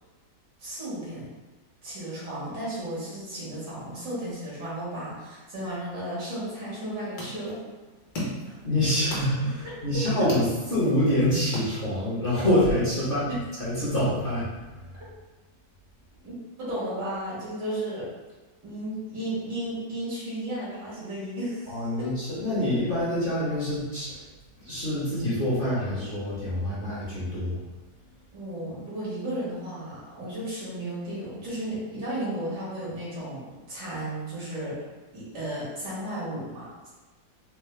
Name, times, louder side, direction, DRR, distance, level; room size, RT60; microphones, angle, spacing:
voice 1, 0.6-1.2 1.8-7.6 8.5-8.6 9.9-10.3 12.7-12.8 16.2-18.1 18.6-22.1 28.3-34.7 35.1-36.9, right 1 dB, 80° right, -8 dB, 2.3 m, -34 dB
sound 1, 6.7-12.3, left 1 dB, 60° left, 1.4 m, -40 dB
voice 2, 8.6-10.4 10.7-13.3 13.6-14.7 21.7-24.2 24.6-27.6, left 1 dB, 40° left, -9 dB, 1.0 m, -26 dB
4.6 x 2.1 x 3.2 m, 1.2 s
omnidirectional pair, 1.9 m